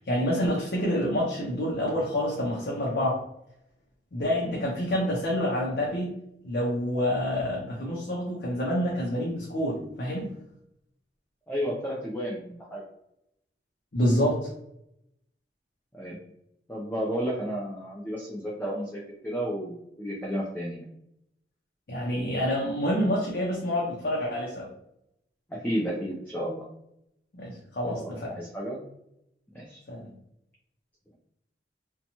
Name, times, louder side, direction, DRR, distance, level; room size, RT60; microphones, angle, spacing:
voice 1, 0.0-3.2 4.1-6.1 6.4-10.3 13.9-14.5 21.9-24.7 27.4-28.3 29.9-30.1, equal, 60° left, -3 dB, 0.6 m, -27 dB
voice 2, 11.5-12.8 15.9-16.2 16.7-20.9 25.5-26.6 27.9-28.8 29.5-29.8, equal, 10° left, -4 dB, 0.4 m, -32 dB
2.7 x 2.2 x 2.8 m, 0.79 s
head